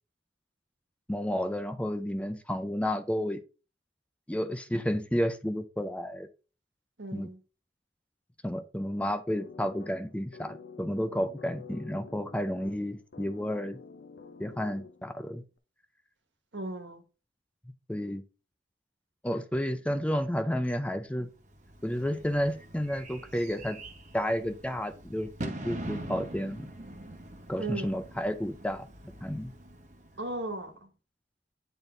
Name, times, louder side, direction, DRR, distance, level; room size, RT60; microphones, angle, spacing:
voice 1, 1.1-3.4 4.3-6.3 7.1-7.3 8.4-13.8 14.4-15.4 17.9-18.2 19.2-21.3 21.8-23.8 24.1-26.7 27.5-28.9 29.2-29.5, equal, 5° left, 0.5 m, -31 dB
voice 2, 7.0-7.4 16.5-17.0 27.6-28.0 30.2-30.9, right 2 dB, 75° right, 1.6 m, -36 dB
Random Rhodes Riff, 9.3-15.2, left 4 dB, 80° left, 0.7 m, -49 dB
Bird / Fireworks, 21.4-30.6, right 1 dB, 40° right, 1.2 m, -44 dB
8.9 x 4.0 x 3.8 m
head